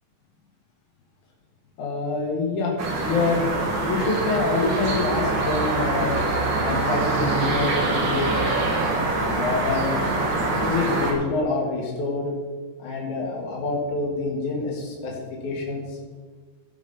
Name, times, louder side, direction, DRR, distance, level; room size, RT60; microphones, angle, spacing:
voice 1, 1.8-2.7 3.0-3.4 3.9-6.2 6.6-8.3 9.1-9.9 10.6-12.3 12.8-15.1 15.4-15.9, left 3 dB, 90° left, -2 dB, 3.3 m, -26 dB
sound 1, 2.8-11.1, right 2 dB, 45° right, 2.1 m, -24 dB
15.5 x 6.2 x 5.4 m, 1.5 s
omnidirectional pair, 3.3 m